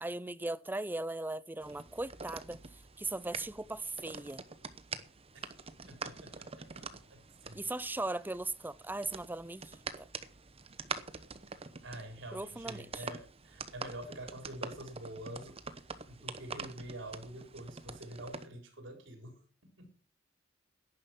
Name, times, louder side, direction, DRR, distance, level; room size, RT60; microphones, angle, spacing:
voice 1, 0.0-2.6 3.0-4.4 7.5-10.1 12.3-13.0, right 2 dB, 10° right, 0.5 m, -38 dB
sound 1, 1.6-18.5, right 5 dB, 30° right, 1.0 m, -46 dB
voice 2, 5.9-7.7 11.8-15.6 16.0-19.4 19.8-19.9, right 1 dB, 80° right, 4.2 m, -47 dB
11.0 x 10.5 x 6.0 m
head